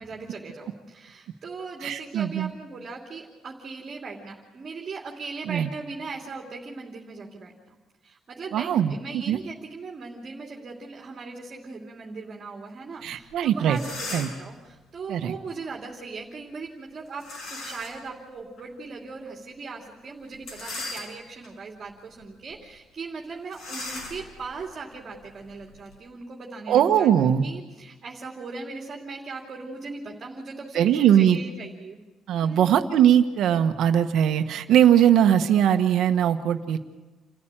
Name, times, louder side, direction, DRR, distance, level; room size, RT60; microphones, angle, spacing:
voice 1, 0.0-7.5 8.0-32.0 32.4-32.8, right 4 dB, 30° right, -1 dB, 2.9 m, -39 dB
voice 2, 1.8-2.5 5.5-5.7 8.5-9.4 13.0-13.8 14.1-14.3 15.1-15.3 26.7-27.5 30.7-31.4 32.3-36.8, right 10 dB, 65° right, 8 dB, 1.3 m, -20 dB
sound 1, 13.3-13.4 13.6-14.5 17.2-18.0 18.6-18.7 20.3-21.5 22.0-22.2 22.5-22.6 23.5-26.0, left 2 dB, 55° left, 6.9 m, -38 dB
28.5 x 14.5 x 9.1 m, 1.2 s
cardioid pair, 160°, 0 cm